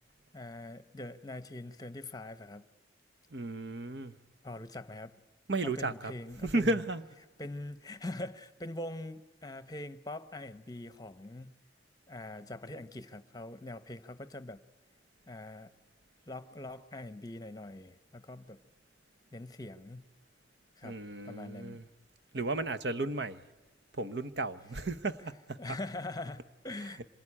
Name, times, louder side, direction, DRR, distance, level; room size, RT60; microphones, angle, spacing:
voice 1, 0.3-2.7 4.4-5.1 5.6-6.8 7.4-11.5 12.1-14.6 15.3-15.7 16.3-18.6 19.3-20.0 20.8-21.0 21.2-21.8 25.6-27.1, left 2 dB, 20° left, 0.9 m, -43 dB
voice 2, 3.3-4.1 5.5-6.1 6.4-7.0 20.8-21.8 22.3-23.4 23.9-25.6, right 2 dB, 70° right, 1.0 m, -34 dB
26.5 x 22.5 x 9.9 m
head